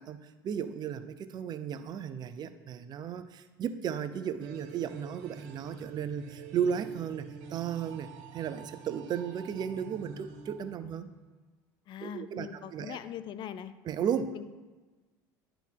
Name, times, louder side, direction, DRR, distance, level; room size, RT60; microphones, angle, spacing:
voice 1, 0.0-7.2 7.5-11.1 12.0-13.0 13.9-14.4, right 8 dB, 40° right, 11 dB, 0.6 m, -35 dB
sound 1, 4.4-11.4, right 6 dB, 70° right, 0.9 m, -48 dB
voice 2, 11.9-13.7 14.3-14.4, left 9 dB, 50° left, 12 dB, 0.5 m, -41 dB
10.5 x 3.8 x 4.6 m, 1.3 s
hypercardioid pair, 85°, 10 cm